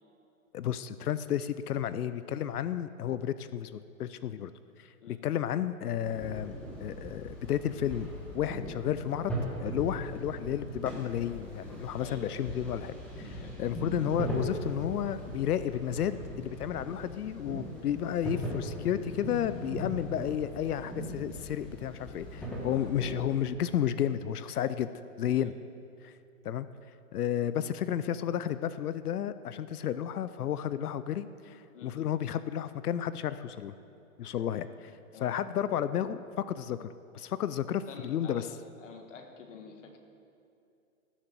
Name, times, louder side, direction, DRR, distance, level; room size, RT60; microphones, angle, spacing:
voice 1, 0.5-4.5 4.8-8.1 8.3-9.3 9.6-24.9 25.2-25.5 26.0-26.1 26.4-26.7 27.1-33.7 34.2-34.9 35.2-36.9 37.1-38.5, left 10 dB, 80° left, 14 dB, 0.6 m, -32 dB
sound 1, 6.0-23.4, equal, 5° left, 1.2 m, -39 dB
voice 2, 12.0-12.4 13.4-13.6 22.7-22.9 25.4-25.6 31.7-31.9 34.5-34.6 35.1-35.3 37.9-38.5 38.8-40.0, left 5 dB, 55° left, 3 dB, 1.7 m, -48 dB
16.5 x 7.3 x 6.8 m, 2.6 s
hypercardioid pair, 160°, 45 cm